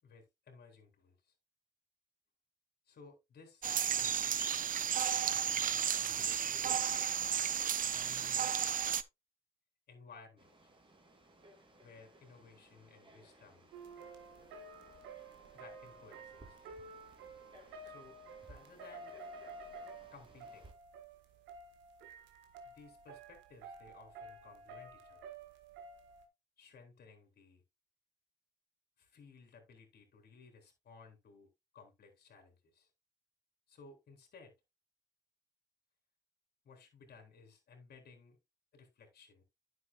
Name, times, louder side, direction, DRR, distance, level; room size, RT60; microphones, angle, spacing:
voice 1, 0.0-1.3 2.9-4.5 5.3-7.1 7.8-8.7 9.9-10.7 11.8-13.7 15.5-16.4 17.8-18.2 18.5-19.2 20.1-20.7 22.6-25.2 26.6-27.6 29.0-31.5 31.7-32.9 33.7-34.5 36.6-38.4 38.7-39.4, left 4 dB, 60° left, 4.0 m, -58 dB
sound 1, 3.6-9.0, right 9 dB, 50° right, 0.7 m, -33 dB
Frog, 10.4-20.7, right 2 dB, 25° right, 2.9 m, -61 dB
sound 2, 13.7-26.2, right 3 dB, 85° right, 1.6 m, -52 dB
9.9 x 7.5 x 2.4 m
supercardioid pair, 70°, 19 cm